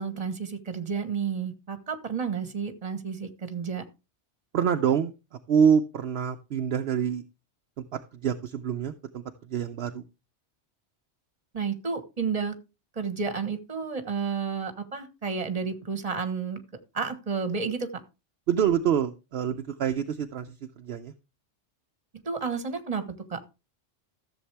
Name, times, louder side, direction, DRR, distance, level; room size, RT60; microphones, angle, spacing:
voice 1, 0.0-3.8 11.5-12.5 12.9-16.6 16.9-18.0 22.2-23.4, right 5 dB, 30° right, 10 dB, 1.4 m, -31 dB
voice 2, 4.5-5.1 5.5-7.2 7.8-10.0 18.5-21.1, right 8 dB, 65° right, 7 dB, 0.8 m, -26 dB
14.0 x 7.2 x 3.4 m, 0.29 s
omnidirectional pair, 1.2 m